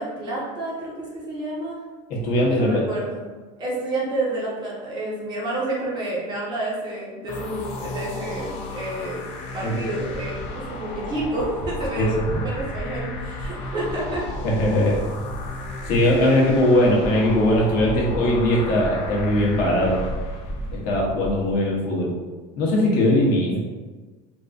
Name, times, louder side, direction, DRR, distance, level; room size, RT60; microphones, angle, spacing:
voice 1, 0.0-1.8 2.6-3.2 3.6-9.2 9.5-14.2, right 2 dB, 30° right, -6 dB, 0.9 m, -29 dB
voice 2, 2.1-2.8 9.6-9.7 12.0-12.1 14.4-15.0 15.8-20.0 20.7-22.1 22.6-23.6, left 1 dB, 60° left, -3 dB, 1.0 m, -20 dB
sound 1, 7.3-20.8, left 3 dB, 40° left, 0.4 m, -35 dB
sound 2, 10.0-21.6, right 1 dB, 55° right, 1.1 m, -35 dB
3.9 x 2.5 x 2.4 m, 1.3 s
cardioid pair, 160°, 16 cm